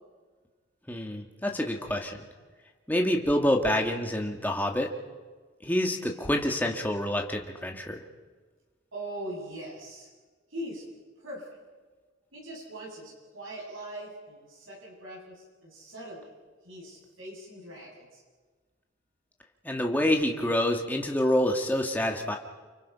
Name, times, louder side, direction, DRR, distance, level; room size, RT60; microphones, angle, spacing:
voice 1, 0.9-2.2 2.9-4.9 5.6-8.0 19.6-22.4, left 1 dB, 10° left, 1 dB, 2.0 m, -27 dB
voice 2, 8.9-10.1 10.5-10.8 11.2-11.6 12.3-16.3 16.6-18.2, right 1 dB, 85° right, -2 dB, 7.9 m, -41 dB
29.5 x 27.0 x 5.7 m, 1.4 s
head